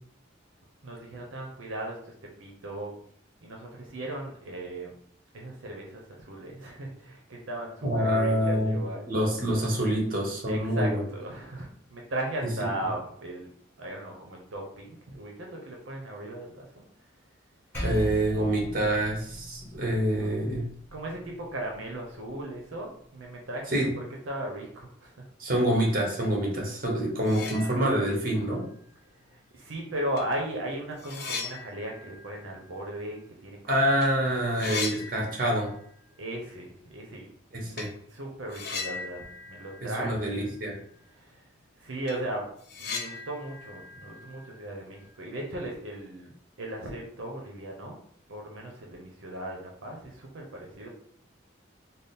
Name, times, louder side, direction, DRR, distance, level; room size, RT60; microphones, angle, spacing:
voice 1, 0.8-2.9 3.4-4.9 5.3-9.1 10.5-13.5 13.8-16.9 20.9-25.1 29.3-33.6 34.4-35.0 36.2-37.3 37.7-37.8 38.1-40.5 41.1-41.4 41.8-42.5 42.8-48.0 48.3-50.9, right 1 dB, 80° right, 0 dB, 0.7 m, -37 dB
voice 2, 7.8-8.8 9.1-11.0 17.8-20.7 23.7-23.9 25.4-28.7 33.7-35.7 37.5-37.9 39.8-40.7, right 1 dB, 45° right, -1 dB, 1.0 m, -26 dB
Percussion, 17.7-22.5, equal, 10° left, 1.0 m, -39 dB
sound 1, 27.2-28.2 28.6-28.7 29.7-29.8 30.2-33.6 33.9-34.1 34.3-35.9 36.2-36.3 37.7-38.0 38.5-40.6 40.9-41.0 41.5-41.6 41.9-45.1, left 5 dB, 55° left, 0.5 m, -39 dB
3.5 x 2.0 x 4.1 m, 0.63 s
head